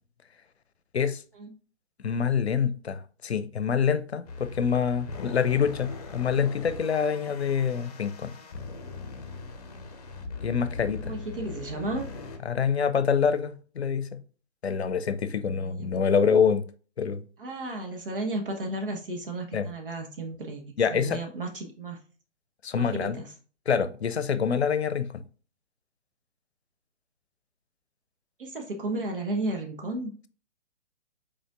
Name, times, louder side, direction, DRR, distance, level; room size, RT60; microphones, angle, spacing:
voice 1, 2.0-8.3 10.4-11.1 12.5-14.2 14.6-16.6 17.0-17.2 19.5-19.7 20.8-21.2 22.6-23.2 23.7-25.2, left 6 dB, 65° left, 0.6 m, -26 dB
sound 1, 4.3-12.4, left 4 dB, 35° left, 0.8 m, -40 dB
voice 2, 11.0-12.1 15.5-15.9 17.4-20.6 20.9-22.0 22.8-23.3 28.4-30.1, right 2 dB, 50° right, 1.1 m, -33 dB
5.1 x 4.2 x 2.4 m
figure-of-eight pair, 130°, 34 cm